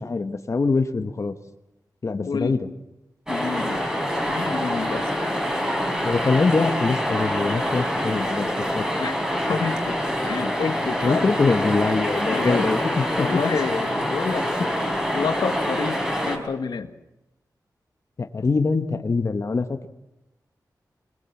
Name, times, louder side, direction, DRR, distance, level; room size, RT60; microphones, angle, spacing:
voice 1, 0.0-1.3 2.0-2.7 6.0-8.8 11.0-13.4 18.2-19.9, left 4 dB, 45° left, 7 dB, 1.3 m, -23 dB
voice 2, 2.2-2.6 3.3-3.8 4.3-5.3 9.0-9.2 9.5-10.0 10.2-11.3 12.3-12.7 13.2-14.8 15.1-16.0 16.3-16.9, left 5 dB, 85° left, 8 dB, 1.5 m, -28 dB
sound 1, 3.3-16.4, equal, 10° right, 4.3 m, -25 dB
22.5 x 21.5 x 7.3 m, 0.93 s
wide cardioid pair, 110°, 7 cm